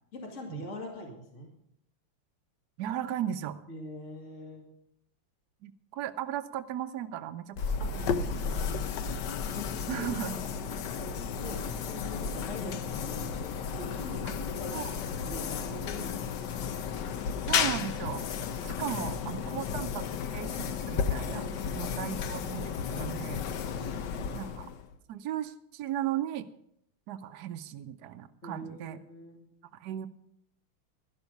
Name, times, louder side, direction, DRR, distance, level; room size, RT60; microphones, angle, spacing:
voice 1, 0.1-1.5 3.7-4.6 7.8-7.9 8.2-8.7 9.5-10.1 10.9-11.1 11.4-14.2 14.6-14.8 15.1-16.5 18.5-19.5 21.3-22.0 28.4-29.4, left 1 dB, 35° left, 1 dB, 2.6 m, -44 dB
voice 2, 2.8-3.6 5.6-7.6 7.9-8.9 9.9-10.4 14.7-15.0 17.4-18.2 18.6-21.5 21.7-23.4 24.3-24.7 25.1-26.5 27.1-29.0 29.8-30.1, right 11 dB, 75° right, 8 dB, 0.9 m, -36 dB
sound 1, 7.6-24.9, left 6 dB, 65° left, 1.3 m, -33 dB
12.5 x 11.5 x 5.3 m, 0.74 s
omnidirectional pair, 2.4 m